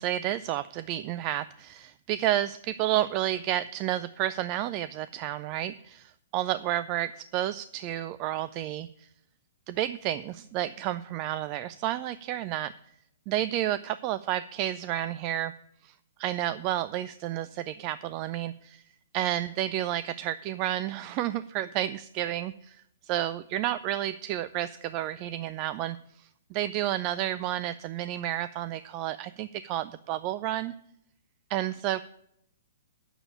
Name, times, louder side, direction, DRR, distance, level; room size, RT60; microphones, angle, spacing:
voice 1, 0.0-9.1 9.7-12.7 13.3-15.5 15.8-18.8 19.1-30.7 31.5-32.0, right 13 dB, 35° right, 14 dB, 0.4 m, -31 dB
8.8 x 7.0 x 8.6 m, 0.72 s
figure-of-eight pair, 120°, 0 cm